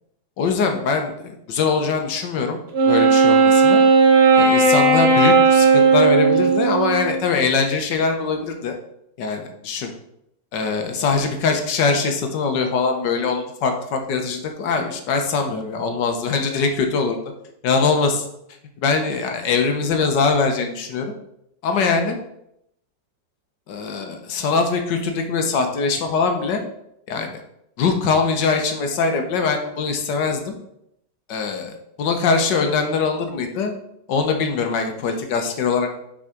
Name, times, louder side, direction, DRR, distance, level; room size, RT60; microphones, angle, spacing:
voice 1, 0.4-2.6 2.9-3.8 4.4-8.7 9.2-9.9 10.5-17.2 17.6-18.2 18.8-21.1 21.6-22.2 23.7-26.6 27.1-27.4 27.8-30.5 31.3-31.7 32.0-33.7 34.1-35.9, left 4 dB, 75° left, 5 dB, 1.7 m, -22 dB
Wind instrument woodwind instrument, 2.7-7.3, right 4 dB, 65° right, 1.8 m, -15 dB
6.3 x 4.9 x 5.8 m, 0.78 s
omnidirectional pair, 1.9 m